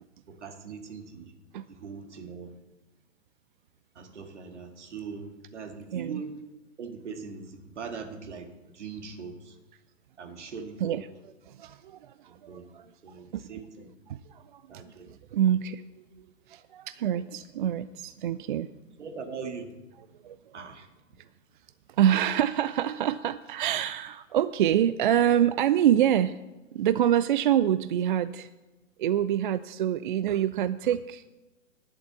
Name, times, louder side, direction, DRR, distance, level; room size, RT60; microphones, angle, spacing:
voice 1, 0.3-1.3 1.7-2.5 4.0-6.3 6.8-9.6 10.2-11.0 12.3-12.7 13.0-13.9 14.7-15.1 19.0-19.7 20.5-20.9, right 5 dB, 65° right, 5 dB, 1.9 m, -41 dB
voice 2, 5.9-6.2 10.8-11.1 11.5-13.5 14.1-16.0 16.5-18.7 20.2-20.6 21.9-26.4 26.7-28.5 29.0-31.3, right 10 dB, 45° right, 14 dB, 0.4 m, -26 dB
11.0 x 7.2 x 7.2 m, 1.1 s
figure-of-eight pair, 115°, 38 cm